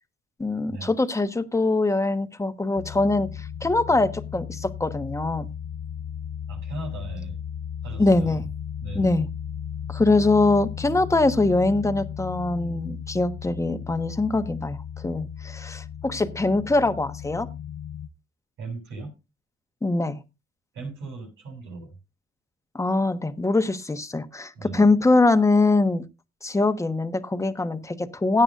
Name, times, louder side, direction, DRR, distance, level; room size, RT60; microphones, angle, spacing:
voice 1, 0.4-5.5 8.0-8.4 8.9-9.3 9.9-14.8 15.0-17.5 19.8-20.2 22.7-26.0 26.4-28.4, left 2 dB, 15° left, 1.3 m, -23 dB
sound 1, 2.8-18.1, left 8 dB, 80° left, 0.6 m, -35 dB
voice 2, 6.5-7.4 7.8-8.4 8.8-9.1 18.6-19.2 20.7-21.9 24.5-24.9, right 3 dB, 85° right, 7.5 m, -37 dB
16.5 x 9.8 x 2.6 m
cardioid pair, 90°, 20 cm